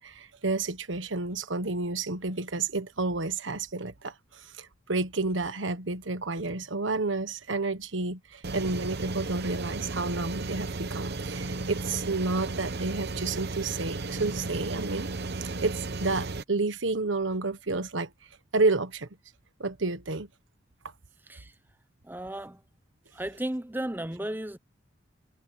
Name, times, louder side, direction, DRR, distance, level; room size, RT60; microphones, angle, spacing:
voice 1, 0.0-15.1 15.6-18.1 18.5-19.1 19.6-20.3, right 3 dB, 75° right, 1.4 m, -30 dB
sound 1, 8.4-16.4, right 3 dB, 55° right, 1.0 m, -34 dB
voice 2, 21.2-21.5 22.0-22.6 23.1-24.6, right 1 dB, 10° right, 1.0 m, -34 dB
head